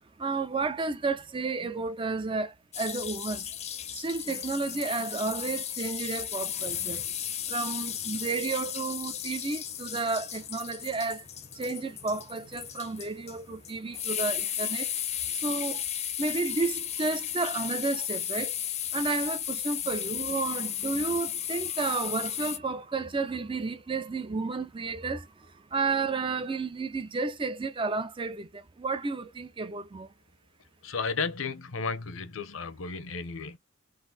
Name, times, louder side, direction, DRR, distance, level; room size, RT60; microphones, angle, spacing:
voice 1, 0.2-3.5 3.9-7.2 7.5-11.3 11.5-14.9 15.3-15.8 16.2-18.5 18.9-25.3 25.7-30.1, right 3 dB, 25° right, 0.5 m, -32 dB
sound 1, 2.7-22.6, left 10 dB, 35° left, 0.6 m, -35 dB
voice 2, 30.8-33.6, left 5 dB, 80° left, 0.8 m, -33 dB
3.9 x 2.6 x 4.0 m
head